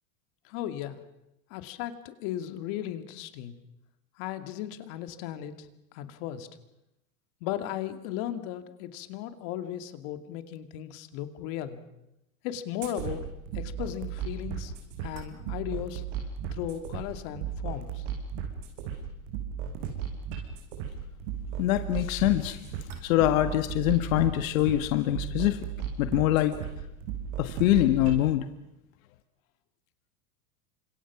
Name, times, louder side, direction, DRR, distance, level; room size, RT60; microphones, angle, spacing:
voice 1, 0.4-1.0 1.5-3.5 4.2-5.7 5.9-6.5 7.4-11.8 12.4-14.7 15.0-16.0 16.5-18.0, left 11 dB, 55° left, 8 dB, 2.4 m, -36 dB
sound 1, 12.8-28.2, right 7 dB, 60° right, 5.8 m, -36 dB
voice 2, 21.6-22.6 23.0-25.6 26.0-26.5 27.4-28.4, left 14 dB, 70° left, 8 dB, 1.7 m, -24 dB
29.5 x 26.0 x 6.1 m, 0.87 s
supercardioid pair, 140°, 42 cm